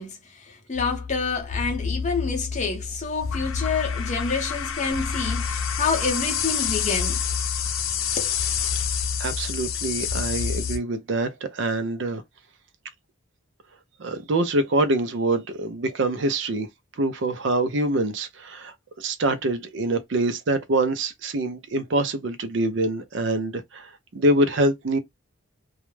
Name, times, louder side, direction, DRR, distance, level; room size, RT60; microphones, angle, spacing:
voice 1, 0.0-7.2 8.2-8.3, left 4 dB, 35° left, 0.6 m, -28 dB
strange sound, 0.7-10.8, left 7 dB, 80° left, 0.5 m, -28 dB
voice 2, 9.2-12.2 14.0-16.7 17.0-25.0, right 2 dB, 60° right, 0.5 m, -25 dB
2.3 x 2.0 x 3.1 m
head